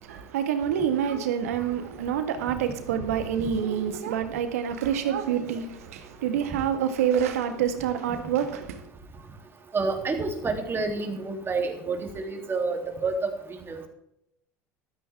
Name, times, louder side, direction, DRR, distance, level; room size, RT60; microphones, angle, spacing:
voice 1, 0.0-8.8, right 8 dB, 85° right, 1.6 m, -27 dB
voice 2, 9.7-13.3 13.7-13.9, right 3 dB, 30° right, 3.0 m, -29 dB
13.5 x 13.0 x 3.6 m
hypercardioid pair, 80°, 8 cm